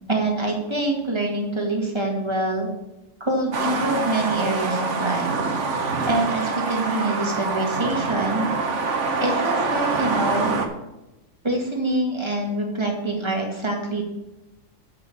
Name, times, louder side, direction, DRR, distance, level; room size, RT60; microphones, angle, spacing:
voice 1, 0.1-2.7 3.2-5.3 6.1-8.5 9.2-10.6 11.4-14.0, right 2 dB, 20° right, 1 dB, 2.0 m, -25 dB
sound 1, 3.5-10.7, right 4 dB, 65° right, 1.4 m, -25 dB
8.1 x 5.8 x 7.0 m, 0.98 s
omnidirectional pair, 1.4 m